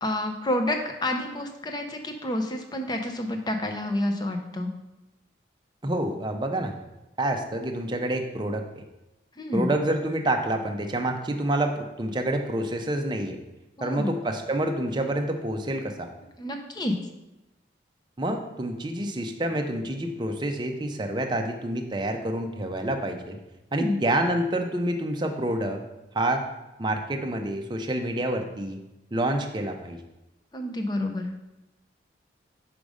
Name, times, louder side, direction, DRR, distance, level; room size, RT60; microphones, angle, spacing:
voice 1, 0.0-4.7 9.4-9.7 13.8-14.1 16.4-17.0 23.7-24.0 30.5-31.3, left 1 dB, 20° left, 4 dB, 0.6 m, -29 dB
voice 2, 5.8-6.7 7.2-8.8 9.5-13.4 13.8-16.1 18.2-23.4 23.7-25.8 26.1-26.5 26.8-28.8 29.1-30.0, right 1 dB, 25° right, 4 dB, 0.6 m, -28 dB
5.2 x 5.0 x 4.9 m, 0.97 s
head